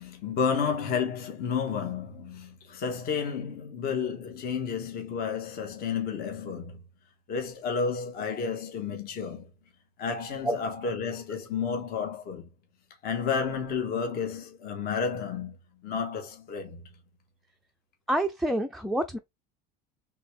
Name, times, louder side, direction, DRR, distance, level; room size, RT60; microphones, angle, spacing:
voice 1, 0.0-6.8 7.3-9.5 10.0-12.5 13.0-15.5 15.8-16.8, left 6 dB, 45° left, 1.5 m, -31 dB
voice 2, 18.1-19.2, right 1 dB, ahead, 0.4 m, -27 dB
4.0 x 3.6 x 3.3 m
cardioid pair, 135°, 21 cm